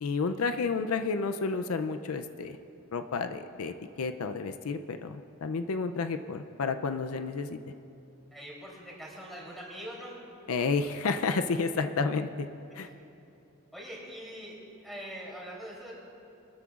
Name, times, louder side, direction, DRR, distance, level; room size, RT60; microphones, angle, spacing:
voice 1, 0.0-2.6 2.9-7.6 10.5-12.5 12.7-12.9, left 4 dB, 80° left, 8 dB, 0.5 m, -31 dB
voice 2, 8.3-10.2 13.7-14.5 14.8-16.0, equal, ahead, -5 dB, 3.3 m, -43 dB
23.5 x 13.0 x 2.5 m, 2.8 s
head